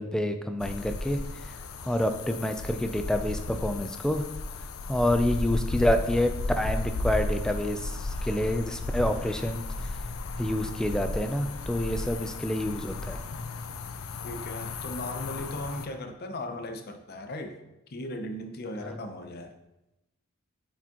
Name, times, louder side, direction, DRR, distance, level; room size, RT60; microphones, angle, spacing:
voice 1, 0.0-1.6 1.8-4.2 4.9-10.0 10.4-13.2 18.9-19.0, left 1 dB, 5° left, 7 dB, 0.3 m, -28 dB
sound 1, 0.6-15.9, left 2 dB, 90° left, 0.5 m, -34 dB
voice 2, 14.2-17.6 17.9-19.5, left 1 dB, 50° left, 6 dB, 0.6 m, -37 dB
7.1 x 5.0 x 2.9 m, 0.93 s
head